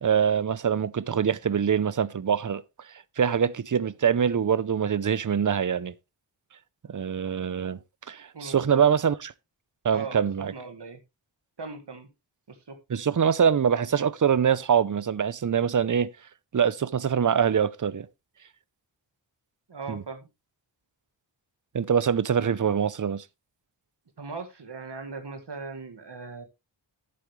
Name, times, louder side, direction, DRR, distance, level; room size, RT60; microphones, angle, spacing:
voice 1, 0.0-2.6 3.2-5.9 6.9-7.8 8.1-9.3 9.8-10.5 12.9-16.1 16.5-18.1 19.9-20.0 21.7-23.2, right 7 dB, 40° right, 0.7 m, -24 dB
voice 2, 8.3-8.9 9.9-11.0 11.6-12.1 12.5-12.8 19.7-20.3 24.2-26.4, right 4 dB, 60° right, 2.0 m, -39 dB
11.0 x 8.3 x 3.2 m
wide cardioid pair, 85°, 46 cm